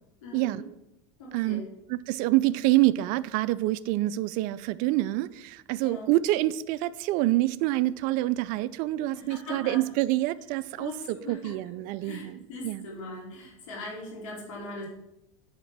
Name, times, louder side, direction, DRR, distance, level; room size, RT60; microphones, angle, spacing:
voice 1, 0.2-0.7 1.2-1.7 5.8-6.1 9.1-9.8 10.8-14.9, left 2 dB, 90° left, 2.7 m, -40 dB
voice 2, 1.9-12.8, right 17 dB, 60° right, 0.4 m, -27 dB
8.1 x 3.6 x 6.0 m
supercardioid pair, 110°, 16 cm